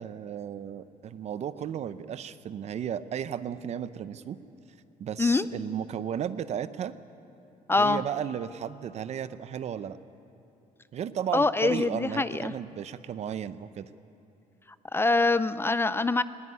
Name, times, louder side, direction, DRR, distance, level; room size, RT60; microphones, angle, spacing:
voice 1, 0.0-4.4 5.0-6.9 7.8-10.0 10.9-13.9, right 9 dB, 50° right, 14 dB, 0.8 m, -34 dB
voice 2, 7.7-8.0 11.3-12.5 14.9-16.2, left 3 dB, 15° left, 14 dB, 0.4 m, -24 dB
19.5 x 18.0 x 9.8 m, 2.9 s
cardioid pair, 135°, 14 cm